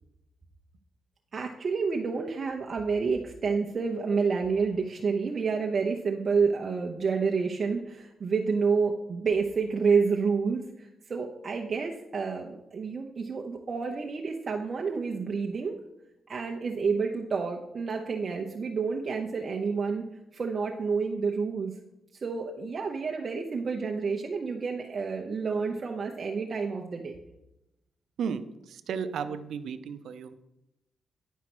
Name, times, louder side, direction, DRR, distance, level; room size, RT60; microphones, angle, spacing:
voice 1, 1.3-15.8 16.3-20.0 20.3-21.7 22.1-27.1, right 5 dB, 45° right, 1 dB, 0.8 m, -29 dB
voice 2, 28.2-30.3, right 6 dB, 80° right, 11 dB, 0.6 m, -34 dB
10.5 x 4.6 x 6.1 m, 0.90 s
cardioid pair, 105°, 0 cm